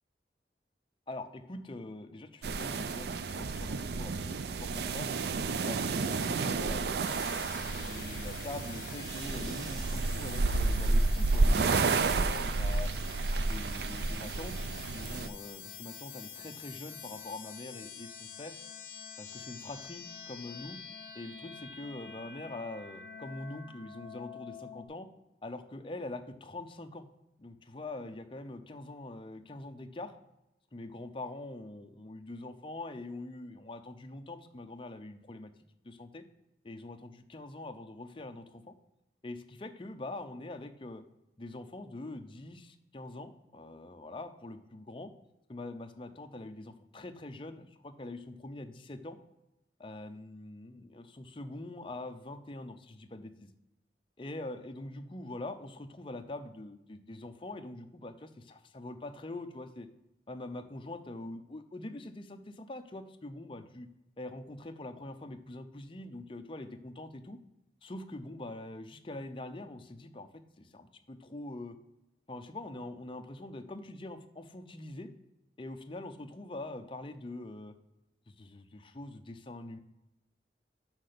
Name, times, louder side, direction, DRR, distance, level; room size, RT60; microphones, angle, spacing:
voice 1, 1.1-5.1 5.7-6.8 7.7-12.9 13.4-14.7 14.9-18.5 19.2-20.8 21.1-25.1 25.4-27.1 27.4-30.1 30.7-35.5 35.8-36.2 36.6-38.7 39.2-41.0 41.4-45.1 45.5-49.2 49.8-53.5 54.2-59.9 60.3-63.9 64.2-67.4 67.8-71.7 72.3-75.1 75.6-77.7 78.3-79.8, left 2 dB, 30° left, 8 dB, 0.6 m, -44 dB
sound 1, 2.4-15.3, right 3 dB, 65° right, 0.4 m, -31 dB
sound 2, 7.0-24.9, left 7 dB, 50° left, 1.3 m, -47 dB
6.5 x 6.0 x 6.6 m, 0.89 s
head